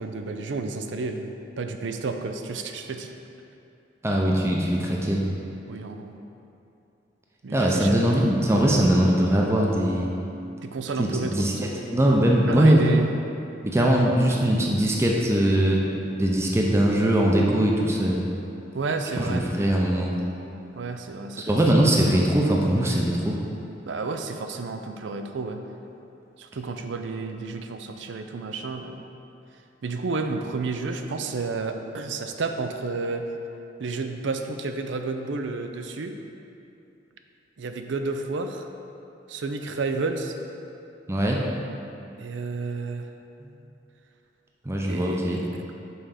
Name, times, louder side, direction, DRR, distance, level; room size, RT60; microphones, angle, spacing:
voice 1, 0.0-3.1 5.7-6.1 7.4-8.3 10.6-11.6 12.5-13.1 18.7-19.5 20.8-21.6 23.9-25.6 26.4-29.1 29.8-33.3 33.8-36.2 37.6-38.7 39.3-40.4 42.2-43.1 44.9-45.4, right 3 dB, 75° right, 6 dB, 0.5 m, -31 dB
voice 2, 4.0-5.2 7.5-10.1 11.0-12.9 13.6-15.8 16.2-18.2 19.2-20.1 21.4-23.4 41.1-41.4 43.4-43.5 44.7-45.4, right 1 dB, 15° right, -2 dB, 0.5 m, -21 dB
5.5 x 4.8 x 5.7 m, 2.8 s
head